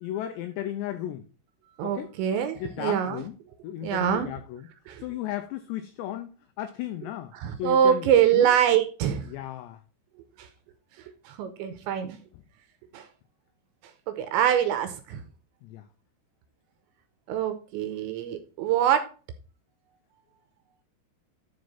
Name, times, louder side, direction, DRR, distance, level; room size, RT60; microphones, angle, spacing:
voice 1, 0.0-1.2 1.8-2.1 2.5-3.3 3.6-4.7 5.0-6.3 6.6-7.3 7.6-8.5 9.3-9.8 15.6-15.8, left 12 dB, 85° left, 2.5 m, -35 dB
voice 2, 1.8-3.2 3.8-4.3 4.9-5.0 7.3-9.3 10.4-10.5 11.3-12.2 12.9-13.1 14.1-15.2 17.3-19.1, right 9 dB, 80° right, 2.9 m, -24 dB
11.5 x 4.8 x 4.2 m
omnidirectional pair, 5.7 m